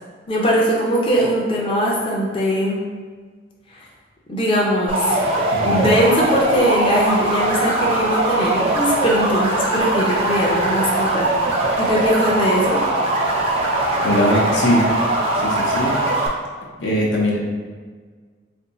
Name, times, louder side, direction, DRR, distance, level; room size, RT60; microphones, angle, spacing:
voice 1, 0.3-2.8 3.7-3.9 4.3-5.2 5.6-11.3 11.8-12.8, equal, 30° left, -4 dB, 0.5 m, -20 dB
sound 1, 4.9-16.3, right 2 dB, 30° right, 0.5 m, -20 dB
voice 2, 5.5-5.9 14.0-14.9 15.4-15.9 16.8-17.4, equal, 85° left, -3 dB, 0.7 m, -20 dB
2.6 x 2.6 x 4.0 m, 1.5 s
head